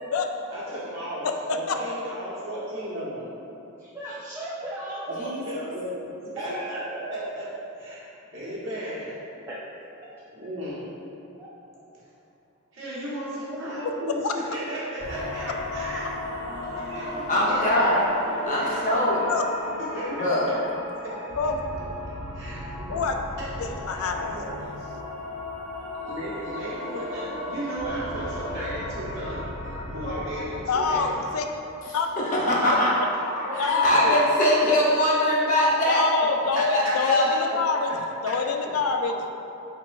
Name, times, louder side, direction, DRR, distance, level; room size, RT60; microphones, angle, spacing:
voice 1, 0.5-3.3 5.1-5.2 5.4-7.5 7.8-8.1 8.3-9.1 10.3-10.8 12.7-16.0 16.7-19.0 19.9-20.3 21.0-21.1 22.3-23.0 23.9-24.6 26.0-31.2 33.3-34.1 36.2-36.3 36.8-36.9, right 1 dB, 65° right, -9 dB, 1.3 m, -35 dB
voice 2, 1.2-1.6 14.2-14.3 19.3-19.4 21.4-21.6 22.9-23.1 23.6-24.4 30.7-31.5 31.9-32.1 33.6-34.1 35.9-37.9 38.2-39.1, left 4 dB, 70° left, 4 dB, 0.3 m, -26 dB
voice 3, 3.8-5.3 5.8-5.9 6.4-6.7 9.5-9.6 10.0-10.2 11.4-11.5 13.5-13.6 16.7-16.9 28.5-28.7 33.5-33.8, right 1 dB, 15° right, -9 dB, 0.3 m, -37 dB
voice 4, 5.2-5.7 17.3-18.1 18.5-19.2 20.1-20.5 32.2-32.9 33.8-36.0 36.5-37.5, left 1 dB, 35° left, -5 dB, 0.7 m, -22 dB
sound 1, 15.0-31.1, left 1 dB, 85° right, 1.2 m, -35 dB
4.1 x 4.0 x 2.4 m, 2.8 s
head